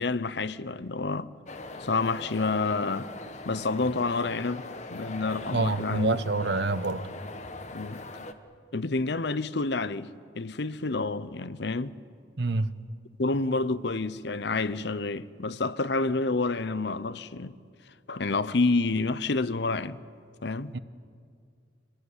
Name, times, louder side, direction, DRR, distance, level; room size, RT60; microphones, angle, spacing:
voice 1, 0.0-1.3 1.8-3.1 3.5-6.2 7.7-8.0 8.7-10.1 10.3-12.0 13.2-17.6 18.1-20.0 20.4-20.7, left 3 dB, 60° left, 0.7 m, -29 dB
sound 1, 1.5-8.3, left 2 dB, 35° left, 1.2 m, -41 dB
voice 2, 5.5-7.0 12.4-12.8 20.7-20.8, right 3 dB, 60° right, 0.9 m, -27 dB
27.0 x 19.5 x 9.8 m
head